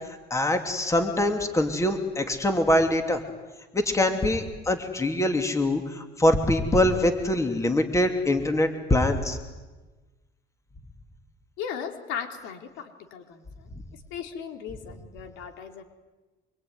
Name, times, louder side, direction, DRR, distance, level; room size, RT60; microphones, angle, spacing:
voice 1, 0.3-3.2 3.7-9.4, left 1 dB, 15° left, 6 dB, 2.9 m, -24 dB
voice 2, 11.6-13.7 14.1-15.8, left 7 dB, 85° left, 6 dB, 3.3 m, -37 dB
26.0 x 23.0 x 9.6 m, 1.2 s
cardioid pair, 130°, 19 cm